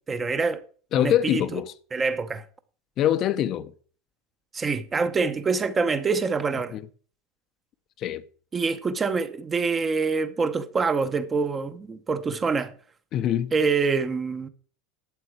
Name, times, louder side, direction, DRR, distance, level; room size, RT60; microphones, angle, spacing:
voice 1, 0.1-0.6 1.0-1.6 1.9-2.4 4.5-6.8 8.5-12.7 13.5-14.5, right 4 dB, 15° right, 0.9 m, -25 dB
voice 2, 0.9-1.7 3.0-3.7 6.7-6.8 8.0-8.2 13.1-13.5, left 11 dB, 35° left, 0.7 m, -24 dB
12.0 x 8.6 x 4.6 m
supercardioid pair, 155°, 0 cm